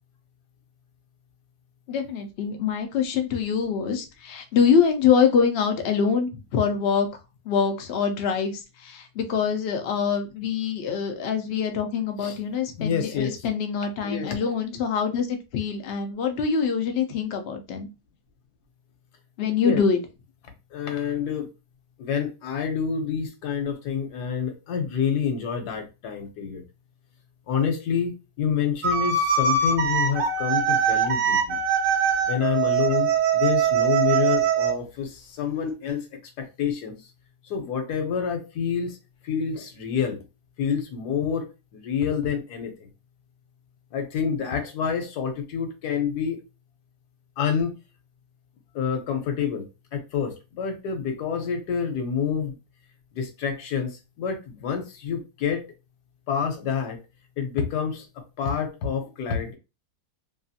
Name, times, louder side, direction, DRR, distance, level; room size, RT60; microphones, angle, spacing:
voice 1, 1.9-7.1 7.4-17.9 19.4-20.0, left 6 dB, 85° left, 0.5 m, -24 dB
voice 2, 12.8-13.4 14.0-14.4 19.6-19.8 20.7-21.5 22.0-26.6 27.5-31.6 32.3-36.1 36.4-36.9 37.5-39.0 39.2-40.2 40.6-41.5 41.7-42.9 43.9-46.4 47.4-47.7 48.7-52.6 53.1-55.6 56.3-57.0 57.4-59.6, left 7 dB, 70° left, 1.2 m, -28 dB
sound 1, 28.8-34.7, right 6 dB, 60° right, 0.9 m, -22 dB
2.9 x 2.4 x 2.7 m
omnidirectional pair, 1.8 m